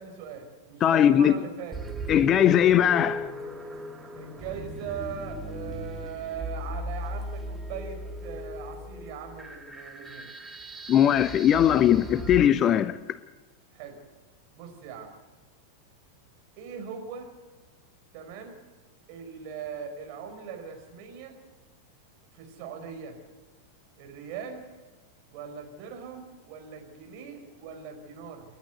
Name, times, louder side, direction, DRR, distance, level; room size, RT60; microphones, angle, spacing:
voice 1, 0.0-1.8 4.1-10.3 11.5-11.7 13.7-14.0 14.5-15.1 16.6-17.3 18.1-18.6 19.1-21.4 22.3-23.2 24.0-24.7 25.3-28.4, right 7 dB, 45° right, 5.1 m, -40 dB
voice 2, 0.8-1.4 2.1-3.3 10.9-13.0, left 10 dB, 30° left, 0.7 m, -20 dB
sound 1, 1.7-12.4, right 1 dB, 10° right, 1.9 m, -37 dB
29.5 x 11.5 x 8.0 m
figure-of-eight pair, 90°, 0 cm